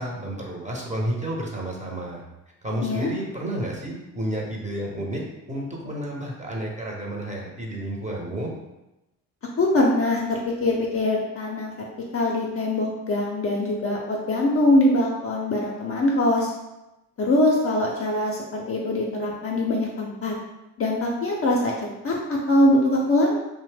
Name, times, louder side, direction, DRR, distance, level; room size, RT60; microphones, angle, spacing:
voice 1, 0.0-2.2 2.6-8.5, right 1 dB, 15° right, -2 dB, 0.7 m, -31 dB
voice 2, 9.6-11.7 12.1-16.5 17.2-20.4 20.8-23.4, left 1 dB, 30° left, -2 dB, 0.5 m, -23 dB
2.8 x 2.1 x 3.3 m, 0.96 s
hypercardioid pair, 60°, 46 cm